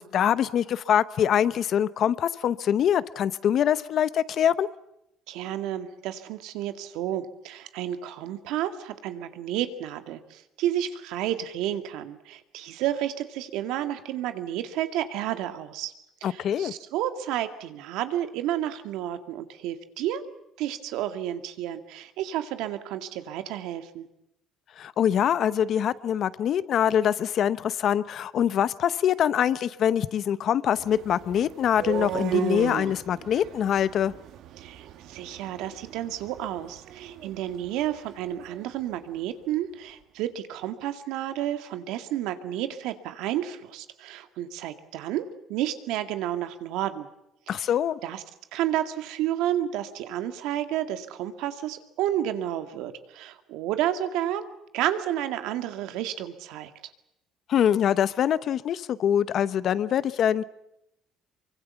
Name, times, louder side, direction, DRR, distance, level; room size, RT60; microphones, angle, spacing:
voice 1, 0.0-4.7 16.2-16.7 24.8-34.1 47.5-48.0 57.5-60.4, left 9 dB, 50° left, 16 dB, 0.9 m, -24 dB
voice 2, 5.3-15.9 16.2-20.2 20.6-24.1 34.6-47.1 47.5-47.7 48.0-48.2 48.5-54.4 54.7-56.7, right 12 dB, 85° right, 8 dB, 2.0 m, -31 dB
sound 1, 30.8-38.7, right 9 dB, 65° right, 1.6 m, -36 dB
24.5 x 24.0 x 7.0 m, 0.84 s
cardioid pair, 140°, 0 cm